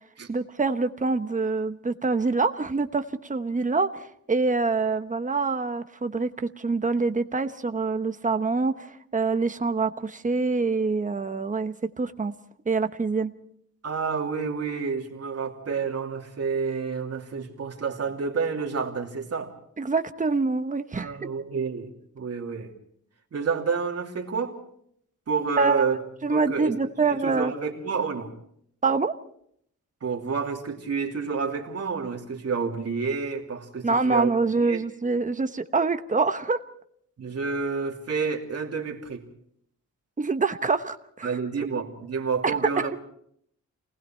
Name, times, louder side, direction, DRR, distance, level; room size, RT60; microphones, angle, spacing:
voice 1, 0.3-12.3 12.7-13.3 19.8-21.1 25.6-26.0 26.2-27.5 28.8-29.1 33.8-36.6 40.2-41.4, right 4 dB, 25° right, 9 dB, 1.1 m, -25 dB
voice 2, 13.8-19.5 20.9-22.7 23.3-24.6 25.3-26.0 26.3-28.3 30.0-34.3 34.6-34.8 37.2-39.2 41.2-43.0, right 5 dB, 55° right, 1 dB, 2.9 m, -29 dB
29.5 x 19.5 x 4.5 m, 0.67 s
wide cardioid pair, 155°, 30 cm